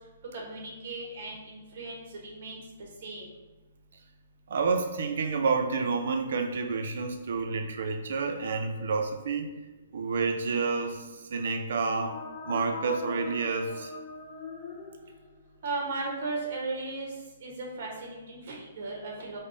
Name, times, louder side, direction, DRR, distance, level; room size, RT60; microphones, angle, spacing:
voice 1, 0.3-3.3 15.6-17.1 17.4-19.4, right 3 dB, 45° right, -1 dB, 0.9 m, -36 dB
voice 2, 4.5-9.5 9.9-12.2 12.5-13.9, right 4 dB, 60° right, 5 dB, 0.4 m, -29 dB
sound 1, 11.7-15.6, left 5 dB, 25° left, 0.4 m, -41 dB
5.0 x 2.0 x 2.6 m, 1.1 s
hypercardioid pair, 165°, 0 cm